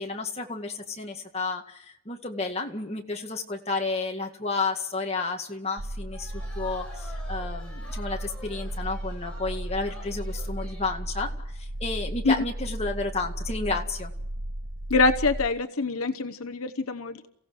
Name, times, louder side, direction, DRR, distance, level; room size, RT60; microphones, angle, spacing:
voice 1, 0.0-14.1, left 3 dB, 30° left, 2 dB, 1.9 m, -32 dB
sound 1, 5.8-15.5, right 1 dB, 40° right, 0.8 m, -35 dB
sound 2, 6.1-11.0, left 1 dB, 5° left, 7.6 m, -48 dB
voice 2, 14.9-17.3, left 3 dB, 70° left, 10 dB, 0.9 m, -25 dB
29.0 x 16.0 x 6.3 m, 0.76 s
head